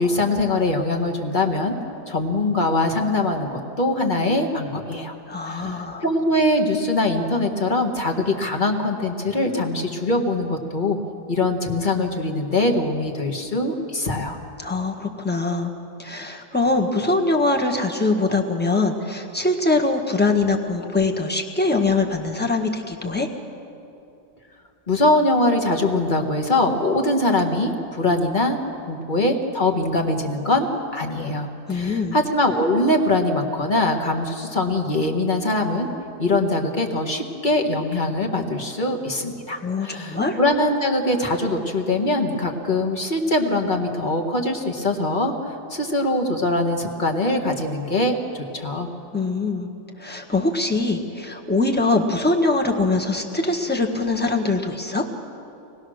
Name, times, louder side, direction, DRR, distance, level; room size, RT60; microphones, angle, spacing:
voice 1, 0.0-1.8 2.1-5.1 5.4-11.0 11.3-14.4 24.9-28.6 28.9-30.7 30.9-35.9 36.2-48.9, left 2 dB, 30° left, 2 dB, 1.7 m, -22 dB
voice 2, 5.3-6.0 14.6-15.7 16.0-23.3 31.7-32.2 39.6-40.4 49.1-49.7 50.0-55.0, left 3 dB, 5° left, 2 dB, 1.4 m, -22 dB
25.5 x 19.5 x 6.4 m, 2.7 s
omnidirectional pair, 1.7 m